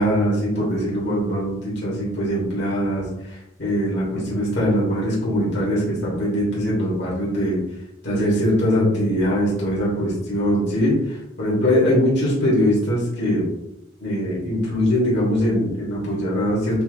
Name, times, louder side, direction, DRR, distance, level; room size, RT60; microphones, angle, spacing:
voice 1, 0.0-3.1 3.6-7.6 8.0-10.9 11.4-13.4 14.0-16.8, equal, 60° left, -6 dB, 1.5 m, -21 dB
5.5 x 2.5 x 2.5 m, 0.87 s
head